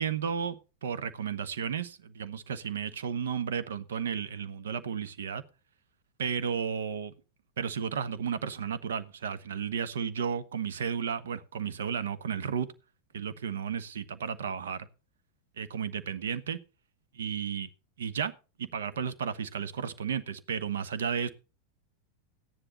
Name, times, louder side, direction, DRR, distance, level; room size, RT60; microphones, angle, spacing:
voice 1, 0.0-5.4 6.2-7.1 7.6-12.7 13.1-14.9 15.6-16.6 17.1-17.7 18.0-18.3 18.6-21.3, right 7 dB, 65° right, 13 dB, 1.0 m, -33 dB
13.5 x 10.0 x 4.1 m, 0.32 s
figure-of-eight pair, 90°, 0 cm